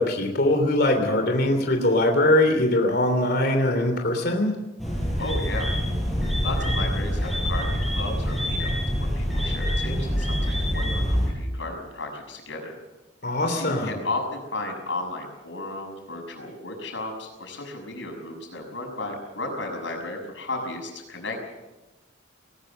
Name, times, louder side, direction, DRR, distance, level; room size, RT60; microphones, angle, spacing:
voice 1, 0.0-4.5 13.2-14.0, left 1 dB, 55° left, 4 dB, 3.1 m, -22 dB
sound 1, 4.8-11.3, equal, ahead, 7.3 m, -25 dB
voice 2, 5.2-5.7 6.4-8.7 9.0-12.7 13.4-21.6, left 2 dB, 70° left, 3 dB, 6.5 m, -34 dB
20.5 x 19.5 x 6.9 m, 1.1 s
head